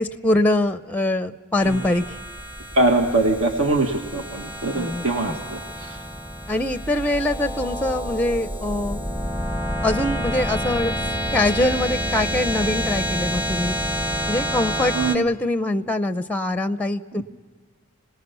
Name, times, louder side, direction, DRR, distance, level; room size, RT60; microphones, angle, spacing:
voice 1, 0.0-2.2 4.7-5.4 6.5-9.0 9.8-10.9 11.3-13.8 14.3-17.2, left 1 dB, 5° left, 11 dB, 0.5 m, -23 dB
sound 1, 1.6-15.2, equal, 10° right, 0.9 m, -28 dB
voice 2, 2.7-6.0 14.9-15.2 17.2-17.3, right 2 dB, 75° right, 3 dB, 1.6 m, -22 dB
26.0 x 19.5 x 6.9 m, 1.5 s
head